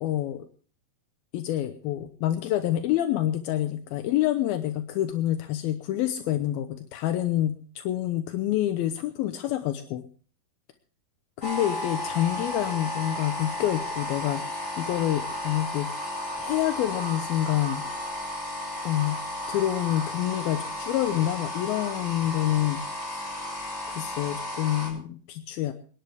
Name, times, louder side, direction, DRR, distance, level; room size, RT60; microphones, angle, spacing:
voice 1, 0.0-0.5 1.3-10.0 11.4-14.4 14.8-15.9 16.4-17.8 18.8-19.2 19.5-23.3 23.9-25.7, left 13 dB, 80° left, 8 dB, 2.7 m, -27 dB
Sonic Snap Sint-Laurens, 11.4-24.9, left 1 dB, 20° left, 7.6 m, -34 dB
26.5 x 10.5 x 3.5 m, 0.43 s
omnidirectional pair, 4.3 m